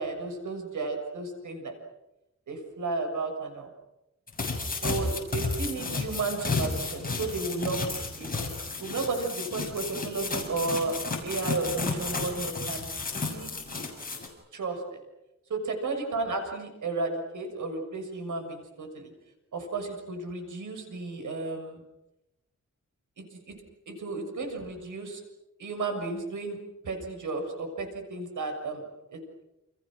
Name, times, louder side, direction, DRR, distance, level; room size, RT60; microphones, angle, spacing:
voice 1, 0.0-1.7 2.5-3.7 4.8-8.5 8.8-13.5 14.5-15.0 15.5-19.1 19.5-21.8 23.2-23.6 23.9-25.2 25.6-26.6 26.8-28.8 29.1-29.2, right 3 dB, 85° right, 5 dB, 6.8 m, -33 dB
sound 1, 4.3-14.3, left 3 dB, 30° left, 7.1 m, -32 dB
30.0 x 29.5 x 6.4 m, 0.93 s
wide cardioid pair, 140°, 30 cm